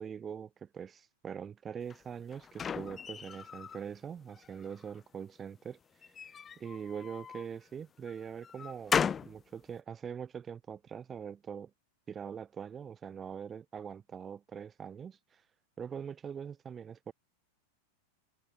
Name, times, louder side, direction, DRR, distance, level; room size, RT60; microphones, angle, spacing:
voice 1, 0.0-5.8 6.6-11.7 12.1-15.4 15.8-17.1, right 7 dB, 20° right, 1.5 m, -43 dB
sound 1, 1.9-3.8 4.3-5.0 6.0-7.5 8.1-9.4, left 7 dB, 20° left, 0.5 m, -36 dB
supercardioid pair, 140°, 0 cm